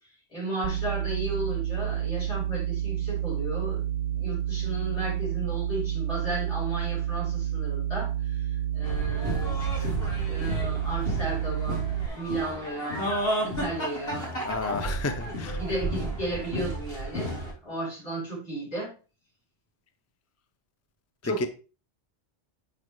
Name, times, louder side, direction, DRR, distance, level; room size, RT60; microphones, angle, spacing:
voice 1, 0.3-3.8 4.2-8.5 8.7-11.8 12.1-13.1 13.4-14.4 14.8-15.1 15.6-17.3 17.6-18.9 21.2-21.5, right 1 dB, 70° left, -6 dB, 4.4 m, -34 dB
sound 1, 0.6-12.1, right 11 dB, 65° right, 0.7 m, -29 dB
sound 2, 8.8-17.5, right 1 dB, 55° left, 2.6 m, -32 dB
voice 2, 14.4-15.6 21.2-21.5, left 3 dB, 25° left, 9 dB, 0.3 m, -31 dB
7.9 x 5.2 x 3.1 m, 0.34 s
omnidirectional pair, 1.2 m